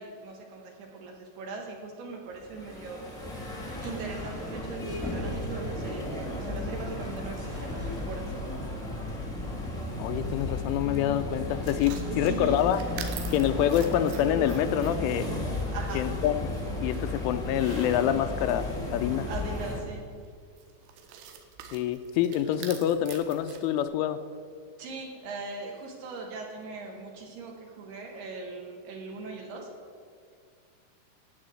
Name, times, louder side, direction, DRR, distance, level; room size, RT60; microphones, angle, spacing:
voice 1, 0.0-3.0 3.8-8.2 12.1-12.6 15.7-16.1 19.3-20.1 24.8-29.7, right 3 dB, 65° right, 1 dB, 3.2 m, -40 dB
sound 1, 2.4-19.8, left 1 dB, 20° left, 1.0 m, -34 dB
sound 2, 3.2-8.7, left 1 dB, ahead, 1.7 m, -42 dB
voice 2, 10.0-12.8 13.3-15.3 15.9-16.4 16.8-19.3 21.7-24.2, left 11 dB, 85° left, 9 dB, 3.0 m, -26 dB
sound 3, 11.6-23.8, right 8 dB, 80° right, 3.8 m, -47 dB
14.0 x 9.0 x 7.8 m, 2.1 s
omnidirectional pair, 5.8 m